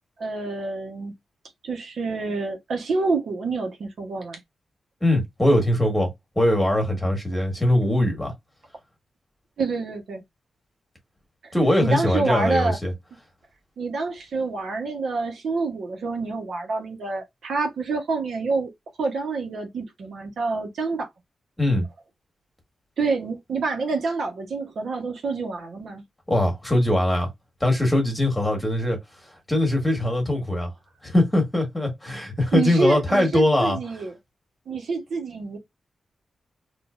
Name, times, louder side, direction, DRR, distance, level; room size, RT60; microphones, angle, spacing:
voice 1, 0.2-1.1 1.6-4.4 9.6-10.2 11.4-12.8 13.8-18.7 19.0-21.1 23.0-26.0 32.5-34.1 34.7-35.6, right 3 dB, 75° right, 1.0 m, -27 dB
voice 2, 5.0-8.3 11.5-12.9 21.6-21.9 26.3-27.3 27.6-29.0 29.5-30.7 31.0-33.8, left 1 dB, 10° left, 1.6 m, -21 dB
3.8 x 2.5 x 2.5 m
cardioid pair, 80°, 0 cm